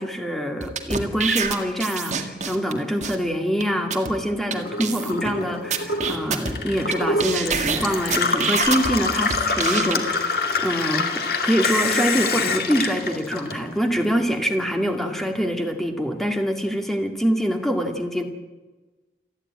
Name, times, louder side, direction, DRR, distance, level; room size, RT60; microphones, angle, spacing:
voice 1, 0.0-18.2, equal, ahead, 3 dB, 2.1 m, -25 dB
sound 1, 0.6-2.7 3.0-3.2 3.6-3.7 3.9-4.1 4.5-4.6 4.8-5.3 5.7-6.9 7.2-8.9 9.3-9.9, right 6 dB, 40° right, 1.8 m, -26 dB
Gurgling / Water tap faucet / Sink (filling or washing), 4.5-14.0 14.3-15.2, left 3 dB, 55° left, 2.3 m, -26 dB
28.0 x 10.0 x 9.7 m, 1.2 s
head